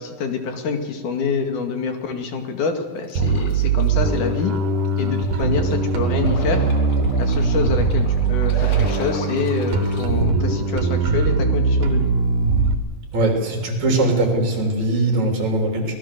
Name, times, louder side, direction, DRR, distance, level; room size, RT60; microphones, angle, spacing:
voice 1, 0.0-4.5 5.0-6.7 7.2-12.1, left 5 dB, 75° left, 5 dB, 3.6 m, -26 dB
sound 1, 3.1-10.0, left 3 dB, 45° left, 3.2 m, -37 dB
Bass guitar, 3.2-12.8, right 4 dB, 85° right, 3.1 m, -20 dB
voice 2, 13.1-16.0, right 2 dB, 65° right, 2 dB, 4.7 m, -20 dB
24.5 x 19.5 x 6.8 m, 1.4 s
omnidirectional pair, 3.5 m